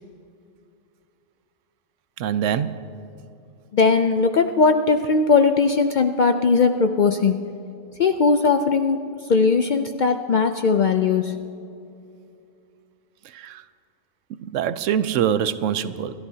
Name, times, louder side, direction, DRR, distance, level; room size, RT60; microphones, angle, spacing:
voice 1, 2.2-2.8 13.3-13.6 14.5-16.1, right 9 dB, 85° right, 14 dB, 0.9 m, -24 dB
voice 2, 3.7-7.4 8.0-9.0 9.3-11.4, left 4 dB, 60° left, 7 dB, 0.5 m, -19 dB
28.5 x 12.5 x 2.8 m, 2.6 s
omnidirectional pair, 1.3 m